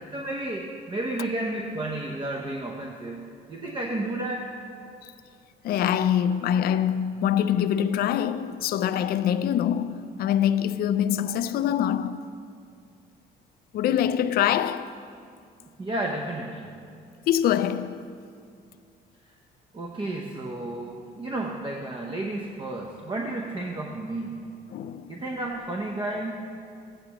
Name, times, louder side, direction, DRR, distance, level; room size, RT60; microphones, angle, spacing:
voice 1, 0.1-4.5 15.6-16.8 19.7-24.4 25.1-26.4, right 2 dB, 25° right, 0.8 m, -32 dB
voice 2, 5.6-12.2 13.7-14.9 17.3-18.2 24.7-25.1, left 10 dB, 60° left, 0.4 m, -24 dB
15.0 x 9.0 x 3.0 m
cardioid pair, 120°, 18 cm